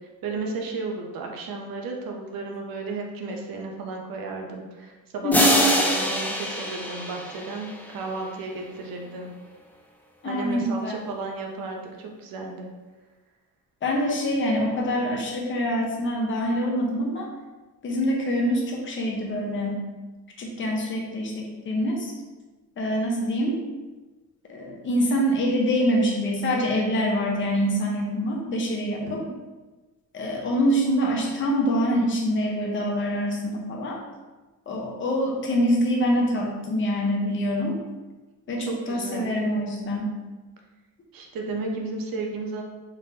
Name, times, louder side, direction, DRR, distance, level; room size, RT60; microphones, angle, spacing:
voice 1, 0.2-9.3 10.2-12.7 29.2-29.3 38.6-39.3 41.1-42.6, right 3 dB, 70° right, 1 dB, 0.7 m, -33 dB
voice 2, 5.2-5.7 10.2-11.0 13.8-17.3 17.8-19.8 20.4-22.1 22.8-23.6 24.5-29.2 30.1-34.0 34.7-37.8 38.5-40.2, equal, 35° left, -1 dB, 0.7 m, -25 dB
sound 1, 5.3-8.2, left 1 dB, 5° left, 0.3 m, -24 dB
3.8 x 3.4 x 2.8 m, 1.2 s
cardioid pair, 160°, 36 cm